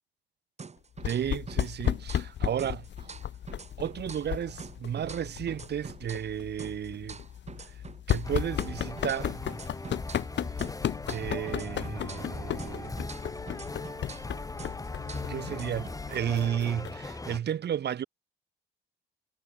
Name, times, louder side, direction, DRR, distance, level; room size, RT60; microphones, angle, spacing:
sound 1, 0.6-2.3 2.6-6.3 6.6-10.3 10.6-14.3 14.6-16.6, right 5 dB, 35° right, 4.7 m, -46 dB
sound 2, 1.0-17.1, left 10 dB, 65° left, 2.8 m, -35 dB
voice 1, 1.0-2.9 3.8-7.2 8.1-9.4 11.1-13.0 15.3-18.0, right 9 dB, 60° right, 1.7 m, -33 dB
sound 3, 8.2-17.4, left 2 dB, 15° left, 3.2 m, -39 dB
cardioid pair, 90°, 20 cm